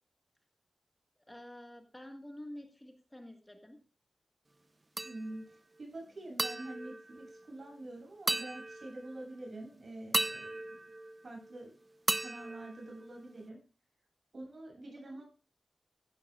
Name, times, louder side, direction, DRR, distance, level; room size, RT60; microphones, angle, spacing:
voice 1, 1.3-3.8 14.9-15.2, left 1 dB, 15° left, 4 dB, 1.6 m, -49 dB
sound 1, 5.0-5.6 6.4-7.8 8.3-9.3 10.1-11.6 12.1-13.5, right 2 dB, 30° right, 0.6 m, -37 dB
voice 2, 5.0-10.8 11.2-11.7 12.2-13.6 14.3-15.2, right 2 dB, 55° right, 0 dB, 7.7 m, -46 dB
16.0 x 12.0 x 2.4 m, 0.32 s
wide cardioid pair, 90°, 0 cm